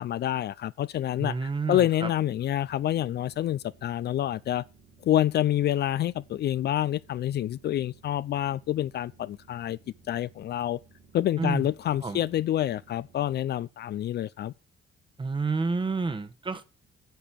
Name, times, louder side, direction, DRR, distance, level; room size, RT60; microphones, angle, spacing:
voice 1, 0.0-4.6 5.0-9.8 10.1-10.8 11.1-14.5, left 12 dB, 55° left, 0.4 m, -27 dB
voice 2, 1.2-2.1 11.4-12.2 15.2-16.6, right 4 dB, 25° right, 1.0 m, -30 dB
sound 1, 1.7-13.4, right 4 dB, 85° right, 3.5 m, -58 dB
9.3 x 4.9 x 7.3 m
cardioid pair, 90°, 20 cm